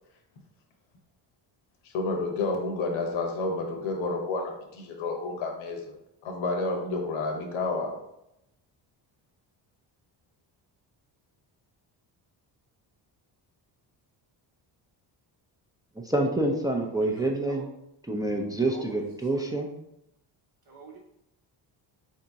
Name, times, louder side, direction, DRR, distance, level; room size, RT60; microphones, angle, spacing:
voice 1, 1.8-5.9 6.2-8.0, left 3 dB, 80° left, 2 dB, 1.0 m, -30 dB
voice 2, 16.0-17.7 18.1-19.7, right 2 dB, 10° right, 0 dB, 0.4 m, -27 dB
voice 3, 16.9-17.6 18.6-19.4 20.7-21.0, right 4 dB, 55° right, -3 dB, 0.8 m, -46 dB
3.9 x 2.8 x 3.5 m, 0.83 s
cardioid pair, 90°, 47 cm